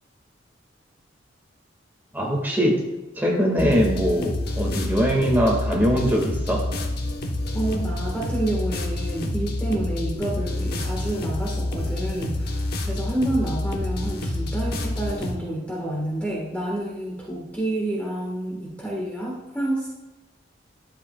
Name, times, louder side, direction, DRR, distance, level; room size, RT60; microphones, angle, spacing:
voice 1, 2.1-2.8 3.2-6.6, equal, 10° right, -1 dB, 1.6 m, -22 dB
sound 1, 3.6-15.4, left 1 dB, 55° left, 0.9 m, -28 dB
voice 2, 7.5-19.9, right 1 dB, 10° left, -4 dB, 1.3 m, -29 dB
11.5 x 7.6 x 2.2 m, 1.1 s
head